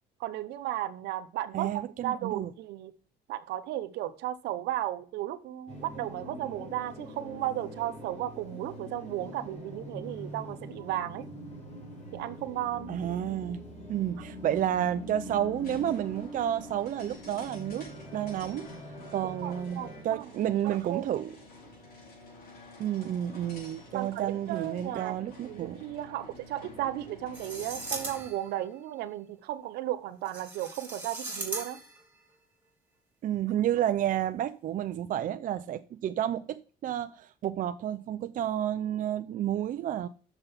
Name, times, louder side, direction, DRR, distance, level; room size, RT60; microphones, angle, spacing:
voice 1, 0.2-2.9 3.3-11.3 12.1-12.9 19.4-21.0 23.9-31.8, right 13 dB, 85° right, 1.0 m, -35 dB
voice 2, 1.5-2.5 12.9-13.6 13.9-18.7 19.1-21.3 22.8-25.8 33.2-40.1, right 11 dB, 55° right, 0.6 m, -31 dB
sound 1, 5.7-20.0, left 1 dB, 45° left, 4.2 m, -44 dB
sound 2, 15.6-28.4, left 2 dB, 65° left, 5.2 m, -50 dB
sound 3, 27.3-28.6 30.3-32.0, right 2 dB, 10° right, 3.1 m, -39 dB
6.8 x 6.2 x 7.2 m
cardioid pair, 110°, 17 cm